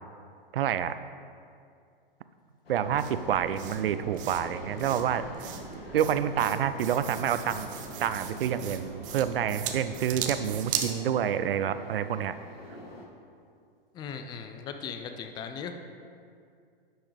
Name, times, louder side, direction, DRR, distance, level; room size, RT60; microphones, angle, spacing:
voice 1, 0.5-0.9 2.7-5.2 5.9-7.7 8.0-12.3, right 9 dB, 70° right, 12 dB, 0.5 m, -28 dB
sound 1, 2.7-13.1, left 1 dB, 85° left, 1.5 m, -46 dB
sound 2, 2.8-10.9, right 8 dB, 25° right, 0.7 m, -38 dB
voice 2, 13.9-15.7, left 7 dB, 15° left, 7 dB, 0.4 m, -38 dB
10.5 x 6.3 x 3.4 m, 2.3 s
hypercardioid pair, 115°, 29 cm